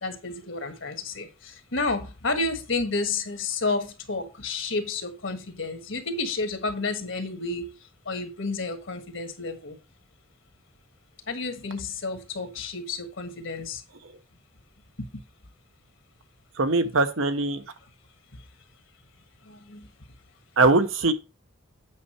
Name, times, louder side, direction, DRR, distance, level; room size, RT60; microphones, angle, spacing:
voice 1, 0.0-7.6 8.1-9.8 11.3-13.8 15.0-15.1 19.5-19.9, left 3 dB, 70° left, 1.6 m, -31 dB
voice 2, 16.6-17.6 20.6-21.1, right 3 dB, 75° right, 1.0 m, -21 dB
8.4 x 5.6 x 4.3 m
head